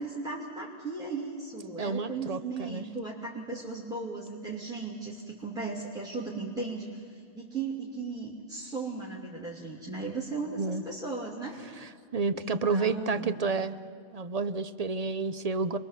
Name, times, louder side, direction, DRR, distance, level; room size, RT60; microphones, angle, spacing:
voice 1, 0.0-11.6 12.3-13.3, right 3 dB, 5° right, -3 dB, 2.6 m, -36 dB
voice 2, 1.8-2.8 10.6-10.8 11.8-13.7 14.1-15.8, right 4 dB, 40° right, 12 dB, 0.6 m, -30 dB
27.5 x 22.0 x 7.4 m, 2.3 s
omnidirectional pair, 1.4 m